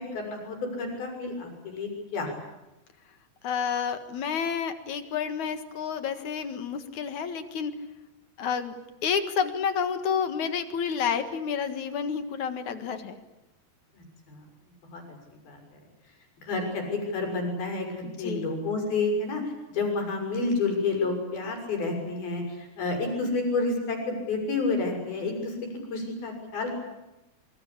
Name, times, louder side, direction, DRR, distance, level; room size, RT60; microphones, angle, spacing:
voice 1, 0.0-2.3 13.9-14.4 14.9-15.0 15.4-15.8 16.4-26.7, left 3 dB, 90° left, 3 dB, 8.2 m, -30 dB
voice 2, 3.4-7.8 8.4-8.8 9.0-13.2 18.0-18.5, left 7 dB, 60° left, 9 dB, 2.9 m, -30 dB
27.0 x 24.0 x 8.6 m, 0.99 s
omnidirectional pair, 4.2 m